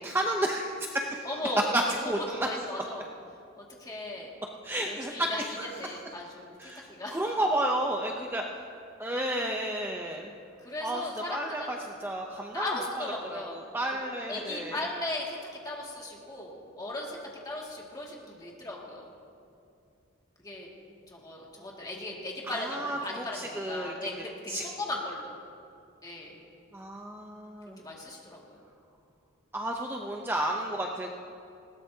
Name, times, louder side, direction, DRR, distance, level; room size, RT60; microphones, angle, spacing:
voice 1, 0.0-1.3 1.7-2.5 4.6-5.7 6.6-8.5 9.0-10.3 10.8-11.0 11.3-13.0 13.3-14.8 22.5-24.1 24.5-24.6 26.7-27.8 29.5-31.1, right 1 dB, 10° right, 1 dB, 0.6 m, -32 dB
voice 2, 1.2-1.6 2.0-3.0 3.6-4.3 4.8-7.2 10.6-11.8 12.5-13.6 13.9-14.0 14.3-15.4 15.6-17.2 17.4-19.1 20.4-20.7 21.1-25.3 26.0-26.3 27.8-28.6, left 1 dB, 20° left, -3 dB, 2.1 m, -37 dB
20.0 x 17.5 x 2.8 m, 2.5 s
head